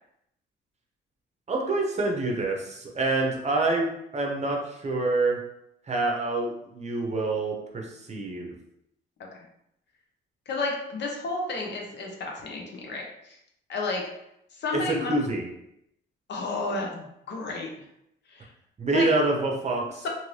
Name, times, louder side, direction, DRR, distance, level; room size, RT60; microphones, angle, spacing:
voice 1, 1.5-5.4 5.9-8.5 14.9-15.5 18.8-20.0, right 2 dB, 35° right, 0 dB, 0.7 m, -26 dB
voice 2, 10.5-13.4 13.7-14.0 14.6-15.1 16.3-17.7 18.3-18.5 18.9-19.1, left 3 dB, 60° left, 0 dB, 0.8 m, -31 dB
2.7 x 2.6 x 3.2 m, 0.79 s
cardioid pair, 90°, 20 cm